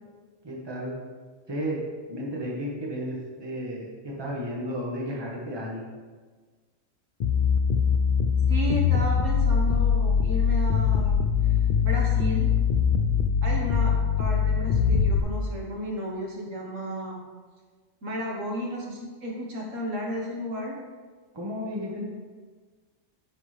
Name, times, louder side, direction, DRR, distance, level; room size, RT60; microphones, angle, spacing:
voice 1, 0.4-1.0 1.5-1.8 2.1-5.8 21.3-22.0, equal, 20° right, -3 dB, 1.3 m, -33 dB
sound 1, 7.2-15.2, left 6 dB, 70° left, 0.4 m, -22 dB
voice 2, 8.5-11.5 11.8-12.6 13.4-17.2 18.0-20.8, equal, 70° right, -2 dB, 1.7 m, -33 dB
9.7 x 5.9 x 3.3 m, 1.5 s
omnidirectional pair, 1.4 m